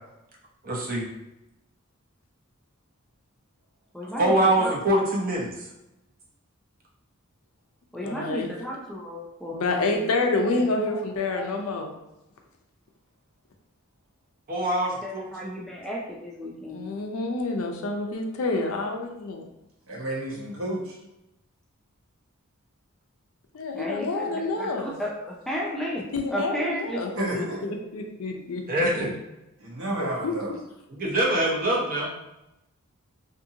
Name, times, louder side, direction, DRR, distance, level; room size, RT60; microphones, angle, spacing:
voice 1, 0.6-1.1 4.2-5.5 14.5-15.5 28.7-29.1 30.9-32.1, right 1 dB, 40° right, -3 dB, 0.7 m, -24 dB
voice 2, 3.9-4.7 7.9-10.1 10.5-11.5 15.0-16.9 23.7-27.0, equal, ahead, -3 dB, 0.3 m, -34 dB
voice 3, 8.0-8.5 9.5-11.9 16.7-19.5 23.5-24.9 26.1-27.1 27.3-28.9 30.0-30.3, left 3 dB, 80° left, 3 dB, 0.5 m, -28 dB
voice 4, 19.9-21.0 27.1-27.7 29.6-30.5, right 1 dB, 70° right, -4 dB, 1.0 m, -31 dB
2.7 x 2.6 x 2.7 m, 0.92 s
head